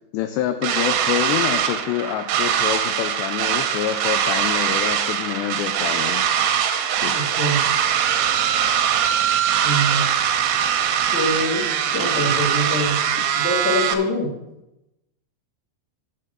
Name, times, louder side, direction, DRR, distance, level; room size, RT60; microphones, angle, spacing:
voice 1, 0.1-6.3 7.0-7.2, left 11 dB, 85° left, 9 dB, 2.5 m, -26 dB
sound 1, 0.6-13.9, right 9 dB, 80° right, 3.3 m, -22 dB
voice 2, 7.0-7.6 9.6-10.1 11.1-11.7 11.9-13.0 13.4-14.3, equal, 45° left, -2 dB, 3.2 m, -24 dB
11.0 x 5.2 x 7.7 m, 0.92 s
omnidirectional pair, 5.4 m